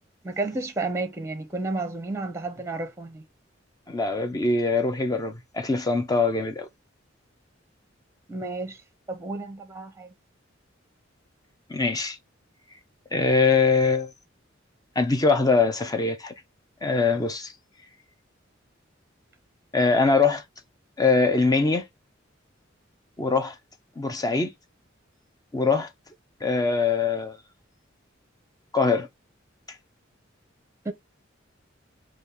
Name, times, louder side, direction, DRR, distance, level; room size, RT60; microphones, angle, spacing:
voice 1, 0.2-3.2 8.3-8.8 9.1-10.1 30.8-30.9, right 3 dB, 15° right, 0.8 m, -31 dB
voice 2, 3.9-6.7 11.7-12.2 13.1-14.1 15.0-16.3 16.8-17.5 19.7-20.4 21.0-21.9 23.2-23.5 24.0-24.5 25.5-25.9 26.4-27.4 28.7-29.1, left 4 dB, 20° left, 0.6 m, -22 dB
4.2 x 2.4 x 3.4 m
head